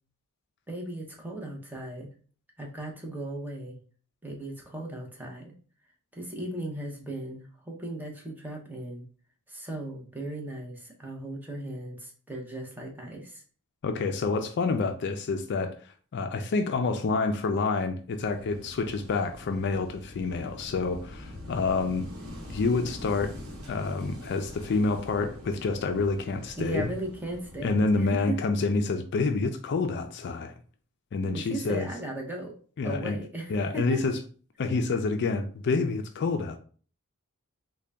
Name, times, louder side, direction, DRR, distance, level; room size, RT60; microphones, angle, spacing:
voice 1, 0.7-2.1 2.6-3.8 4.2-5.5 6.1-9.0 9.5-13.4 26.6-28.4 31.2-32.6 32.8-34.0, right 1 dB, 10° right, 0.7 m, -37 dB
voice 2, 13.8-15.7 16.1-22.1 22.5-23.4 23.7-26.9 27.6-30.5 31.1-31.9 32.8-33.2 33.5-34.2 34.6-36.6, left 3 dB, 50° left, 0.4 m, -28 dB
Wind / Waves surf, 18.2-28.2, left 1 dB, 75° right, 1.0 m, -44 dB
3.8 x 2.2 x 3.3 m
head